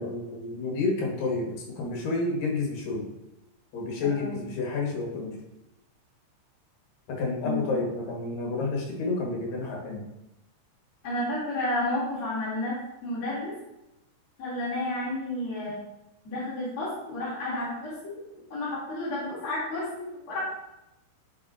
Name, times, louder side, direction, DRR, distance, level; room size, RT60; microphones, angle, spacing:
voice 1, 0.0-3.1 3.7-5.4 7.1-10.0, left 3 dB, 75° left, 0 dB, 2.9 m, -30 dB
voice 2, 4.0-4.4 7.4-7.7 11.0-13.5 14.4-15.8 16.2-18.2 18.5-20.4, left 1 dB, 45° left, -11 dB, 3.1 m, -31 dB
11.0 x 4.6 x 2.4 m, 0.93 s
omnidirectional pair, 4.0 m